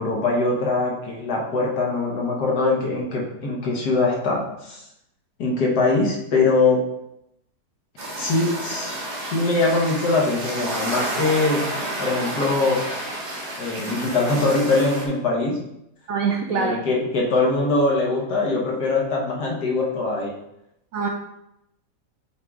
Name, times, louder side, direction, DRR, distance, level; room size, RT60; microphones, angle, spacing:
voice 1, 0.0-4.8 5.4-6.8 8.2-9.0 9.3-11.7 12.0-12.8 13.6-15.6 16.5-20.4, left 3 dB, 70° left, -1 dB, 1.7 m, -22 dB
sound 1, 8.0-15.1, right 1 dB, 45° right, 1.4 m, -30 dB
voice 2, 16.1-16.8 20.9-21.1, right 5 dB, 70° right, 2 dB, 0.8 m, -24 dB
7.4 x 3.7 x 3.5 m, 0.83 s
omnidirectional pair, 1.9 m